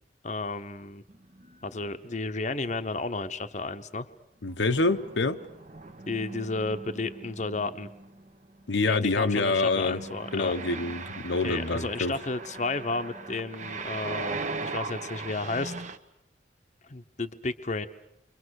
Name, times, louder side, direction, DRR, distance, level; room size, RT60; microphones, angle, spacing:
voice 1, 0.2-1.0 1.6-4.1 6.1-7.9 8.9-10.5 11.4-15.7 16.9-17.9, left 3 dB, 40° left, 9 dB, 0.9 m, -32 dB
sound 1, 1.1-3.0 4.6-16.0, right 3 dB, 40° right, 1.3 m, -39 dB
voice 2, 4.4-5.4 8.7-10.0 10.3-12.1, left 3 dB, 85° left, 8 dB, 1.1 m, -26 dB
29.5 x 24.5 x 6.5 m, 0.79 s
head